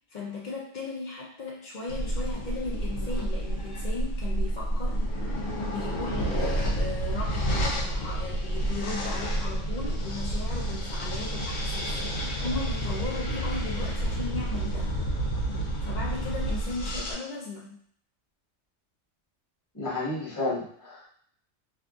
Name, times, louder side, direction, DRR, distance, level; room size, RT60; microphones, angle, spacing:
voice 1, 0.1-5.0 5.3-14.9 15.8-17.8, left 3 dB, 60° left, -3 dB, 0.5 m, -37 dB
sound 1, 1.9-17.1, right 1 dB, 75° left, 1.0 m, -29 dB
voice 2, 19.7-21.2, left 2 dB, 15° left, -8 dB, 1.1 m, -32 dB
2.7 x 2.5 x 2.3 m, 0.63 s
omnidirectional pair, 1.4 m